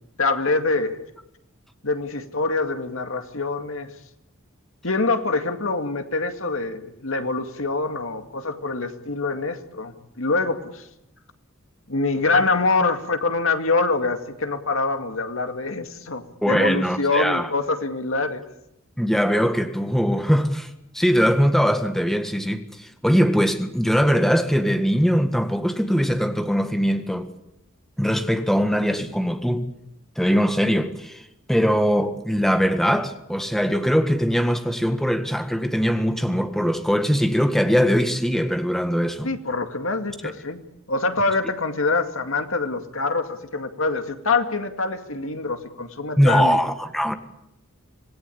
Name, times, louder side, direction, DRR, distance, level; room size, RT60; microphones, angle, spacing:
voice 1, 0.2-1.0 1.8-3.9 4.8-10.9 11.9-18.4 39.2-40.6 40.9-46.6, left 3 dB, 75° left, 2.3 m, -25 dB
voice 2, 16.4-17.5 19.0-20.7 20.9-27.3 28.0-29.7 30.2-31.2 31.5-39.3 46.2-47.1, equal, ahead, 1.7 m, -21 dB
26.0 x 19.0 x 8.7 m
head